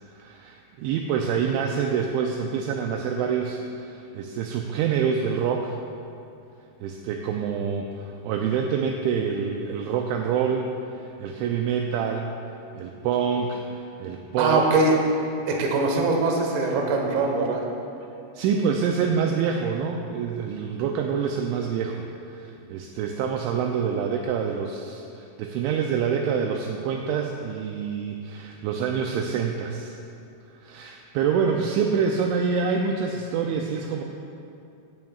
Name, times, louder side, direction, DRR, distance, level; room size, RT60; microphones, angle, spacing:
voice 1, 0.0-5.8 6.8-12.3 12.7-14.7 18.3-29.9 30.6-34.0, right 6 dB, 85° right, 2 dB, 2.8 m, -26 dB
voice 2, 14.4-15.0 15.5-17.6, right 3 dB, 65° right, 1 dB, 2.7 m, -22 dB
16.5 x 11.0 x 2.4 m, 2.6 s
omnidirectional pair, 5.7 m